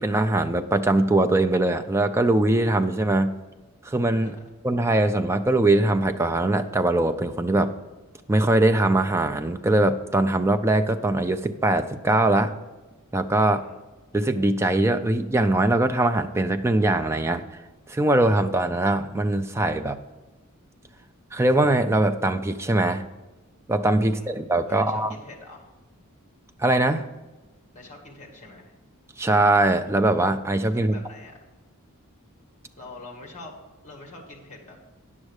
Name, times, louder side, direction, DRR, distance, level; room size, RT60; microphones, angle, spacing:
voice 1, 0.0-3.3 3.8-4.4 4.6-7.7 8.3-12.5 13.1-13.6 14.1-17.4 17.9-20.0 21.3-23.1 23.7-25.1 26.6-27.1 29.2-31.0, right 2 dB, 10° right, 7 dB, 0.3 m, -21 dB
voice 2, 24.7-25.7 27.7-28.7 30.7-31.4 32.8-33.5 33.8-34.8, left 2 dB, 30° left, 0 dB, 1.9 m, -44 dB
9.6 x 6.4 x 4.8 m, 1.2 s
head